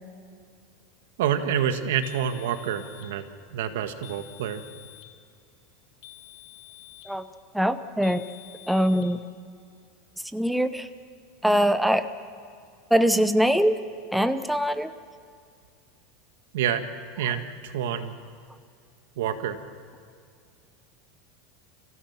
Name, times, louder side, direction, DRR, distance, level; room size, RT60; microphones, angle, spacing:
voice 1, 1.2-3.2 3.5-4.6 16.5-16.8 17.2-18.1 19.1-19.6, right 9 dB, 85° right, 8 dB, 1.7 m, -27 dB
sound 1, 2.0-3.1 4.0-5.1 6.0-7.2 8.0-9.1, left 18 dB, 70° left, 1.6 m, -48 dB
voice 2, 7.5-8.2 8.7-9.2 10.3-10.9 11.4-12.1 12.9-13.7 14.1-14.9, equal, ahead, 10 dB, 0.7 m, -22 dB
29.5 x 16.0 x 7.3 m, 2.2 s
supercardioid pair, 145°, 0 cm